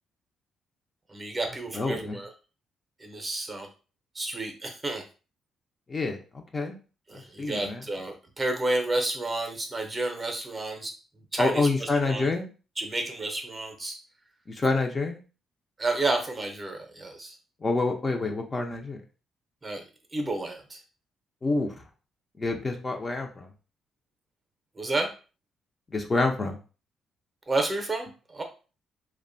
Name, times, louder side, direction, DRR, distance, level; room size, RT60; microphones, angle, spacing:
voice 1, 1.1-2.3 3.0-3.7 4.1-5.0 7.1-12.3 12.8-14.0 15.8-17.4 19.6-19.8 20.1-20.8 24.8-25.1 27.5-28.4, right 2 dB, 25° right, 4 dB, 0.6 m, -31 dB
voice 2, 1.7-2.2 5.9-6.2 6.5-6.8 7.4-7.8 11.4-12.5 14.5-15.2 17.6-19.0 21.4-21.7 22.4-23.5 25.9-26.6, left 3 dB, 30° left, 3 dB, 0.5 m, -27 dB
2.5 x 2.1 x 2.5 m, 0.35 s
cardioid pair, 90°, 0 cm